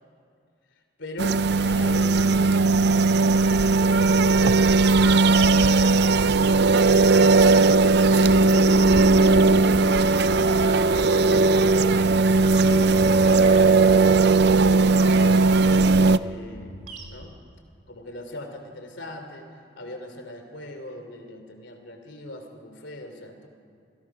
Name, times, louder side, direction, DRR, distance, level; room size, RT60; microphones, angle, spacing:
voice 1, 1.0-3.3 3.9-6.1 6.5-9.8 10.1-15.4 16.2-16.8 17.1-17.3 17.9-23.5, left 1 dB, 70° left, 5 dB, 3.0 m, -41 dB
sound 1, 1.2-16.2, right 3 dB, 55° right, 0.5 m, -18 dB
sound 2, 4.9-17.2, right 1 dB, 40° right, 2.4 m, -41 dB
28.0 x 19.5 x 6.0 m, 2.3 s
head